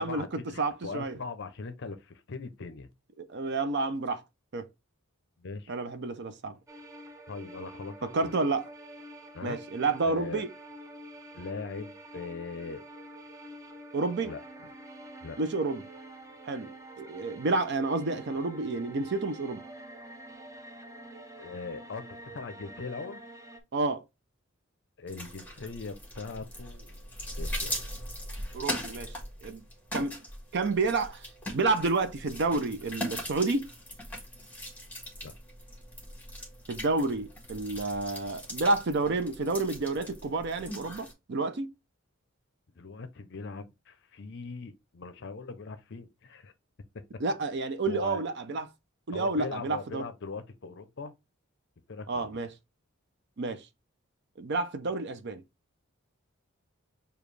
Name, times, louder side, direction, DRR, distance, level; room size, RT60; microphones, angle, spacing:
voice 1, 0.0-2.9 5.4-5.7 7.3-8.3 9.3-9.6 10.0-10.4 11.3-12.8 14.2-14.4 15.2-15.4 21.4-23.2 25.0-27.0 27.4-27.8 35.2-35.3 42.8-46.5 47.9-48.2 49.1-51.1 51.9-52.4, left 4 dB, 55° left, 0.6 m, -40 dB
voice 2, 0.6-1.2 3.3-4.2 4.5-4.7 5.7-6.6 8.0-8.7 9.4-10.5 13.9-14.3 15.4-15.8 16.4-16.7 17.0-19.6 23.7-24.0 28.5-29.6 29.9-30.2 30.5-31.3 31.5-33.7 36.7-41.7 47.2-48.7 49.1-50.1 52.1-52.5 53.4-53.7 54.4-55.4, right 3 dB, 55° right, 0.5 m, -30 dB
sound 1, 6.7-23.6, right 1 dB, 15° right, 0.6 m, -47 dB
sound 2, 25.1-41.1, equal, 10° left, 1.4 m, -40 dB
7.0 x 2.3 x 3.2 m
head